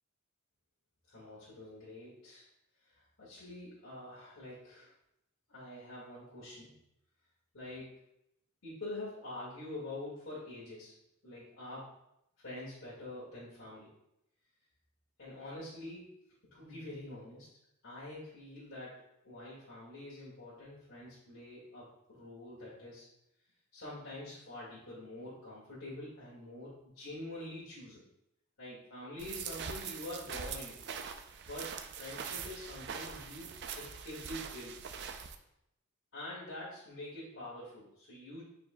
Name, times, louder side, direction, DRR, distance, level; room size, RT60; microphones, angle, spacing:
voice 1, 1.1-2.5 3.2-4.9 5.5-6.7 7.5-7.9 8.6-10.9 11.2-11.9 12.4-13.9 15.2-16.1 16.5-17.5 17.8-23.0 23.7-28.0 28.6-30.8 31.4-33.5 33.8-34.8 36.1-38.4, left 1 dB, 70° left, -8 dB, 1.9 m, -46 dB
sound 1, 29.2-35.3, right 6 dB, 60° right, 0.5 m, -43 dB
8.8 x 4.7 x 2.2 m, 0.83 s
head